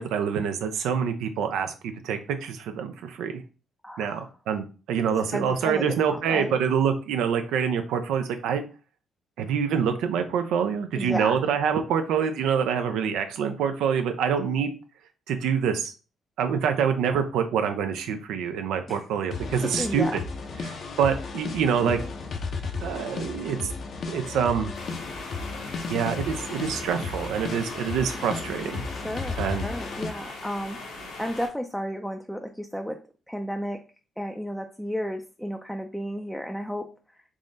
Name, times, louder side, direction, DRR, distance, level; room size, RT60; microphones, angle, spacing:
voice 1, 0.0-3.4 4.0-8.6 9.4-14.7 15.3-15.9 16.4-20.2 20.6-22.0 22.8-23.6 24.1-24.7 25.9-28.8 29.4-29.6, right 7 dB, 85° right, 7 dB, 0.4 m, -26 dB
voice 2, 3.8-4.3 5.3-6.5 11.0-11.4 18.9-19.0 19.6-20.2 28.9-30.8 31.2-33.0 33.3-33.8 34.2-36.9, equal, ahead, 3 dB, 0.4 m, -32 dB
sound 1, 18.9-19.0 19.3-30.1, left 4 dB, 55° left, 0.6 m, -34 dB
sound 2, 24.7-31.5, left 2 dB, 90° left, 1.1 m, -40 dB
3.6 x 2.1 x 3.8 m, 0.35 s
cardioid pair, 90°, 0 cm